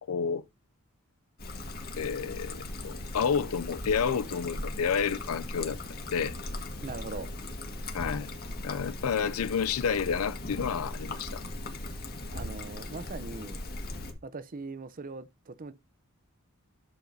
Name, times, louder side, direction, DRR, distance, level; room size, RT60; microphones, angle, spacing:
voice 1, 0.1-0.4 2.0-5.8 6.1-6.3 7.9-8.3 8.6-11.4, left 6 dB, 75° left, 0.5 m, -30 dB
Trickle dribble, 1.4-14.1, left 2 dB, 45° left, 1.8 m, -38 dB
voice 2, 6.8-7.3 12.3-13.6 14.2-15.7, right 3 dB, 40° right, 0.6 m, -40 dB
11.5 x 7.0 x 2.7 m
head